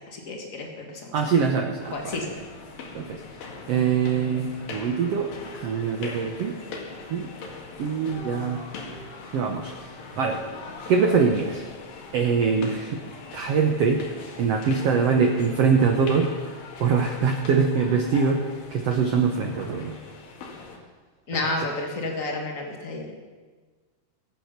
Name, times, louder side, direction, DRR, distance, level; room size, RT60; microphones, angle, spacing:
voice 1, 0.1-1.1 1.9-2.3 21.3-23.1, left 2 dB, 55° left, 1 dB, 0.9 m, -31 dB
voice 2, 1.1-2.3 2.9-3.2 3.7-6.6 7.1-7.3 7.8-8.7 9.3-9.7 10.2-10.4 10.9-11.6 12.1-13.0 13.3-14.0 14.4-16.3 16.8-18.4 18.7-20.0 21.5-21.6, right 5 dB, 80° right, 3 dB, 1.4 m, -23 dB
sound 1, 1.8-20.8, left 4 dB, 70° left, 3.5 m, -41 dB
23.0 x 8.0 x 5.9 m, 1.4 s
omnidirectional pair, 4.4 m